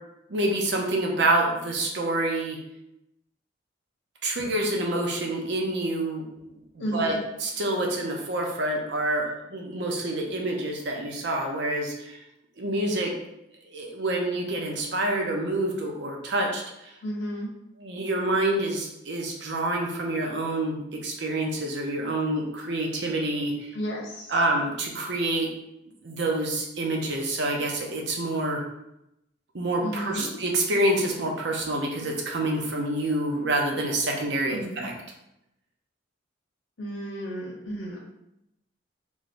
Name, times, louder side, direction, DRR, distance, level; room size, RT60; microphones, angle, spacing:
voice 1, 0.3-2.6 4.2-6.2 6.7-12.2 12.6-13.1 13.7-16.6 17.8-23.7 24.3-25.5 26.0-28.6 29.5-34.9, right 1 dB, 65° right, 0 dB, 0.7 m, -27 dB
voice 2, 6.8-7.2 17.0-17.5 23.7-24.2 29.8-30.3 34.5-34.8 36.8-38.0, equal, 85° left, -3 dB, 1.1 m, -32 dB
3.5 x 3.0 x 2.6 m, 0.85 s
head